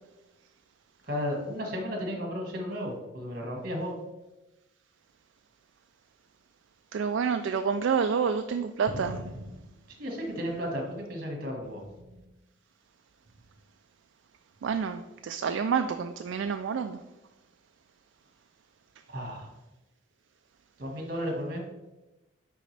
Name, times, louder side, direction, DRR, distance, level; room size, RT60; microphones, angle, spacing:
voice 1, 1.1-3.9 10.0-11.9 19.1-19.5 20.8-21.6, equal, 45° right, 1 dB, 1.7 m, -34 dB
voice 2, 6.9-9.2 14.6-17.0, right 6 dB, 65° right, 7 dB, 0.3 m, -28 dB
sound 1, 8.9-11.1 11.5-12.4 13.3-13.6 14.6-14.8, right 1 dB, 80° right, 0.8 m, -44 dB
10.0 x 3.8 x 3.3 m, 1.0 s
head